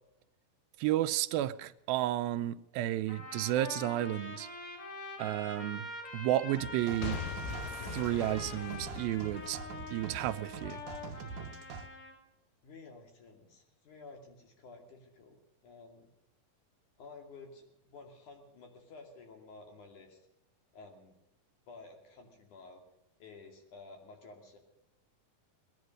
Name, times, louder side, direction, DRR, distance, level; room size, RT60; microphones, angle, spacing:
voice 1, 0.8-4.5 5.2-5.9 6.1-7.2 7.9-9.6 9.9-10.8, right 14 dB, 90° right, 12 dB, 2.5 m, -32 dB
Trumpet, 3.1-12.1, left 2 dB, 40° left, 3.5 m, -44 dB
sound 1, 6.5-11.9, right 5 dB, 65° right, 2.4 m, -45 dB
Boom / Shatter / Crushing, 7.0-11.0 11.5-11.6, left 9 dB, 80° left, 1.7 m, -43 dB
voice 2, 12.6-15.4 15.6-16.1 17.0-20.2 20.7-21.2 21.7-22.8 23.2-24.6, left 3 dB, 60° left, 3 dB, 3.9 m, -52 dB
19.5 x 11.0 x 6.3 m, 0.87 s
omnidirectional pair, 4.1 m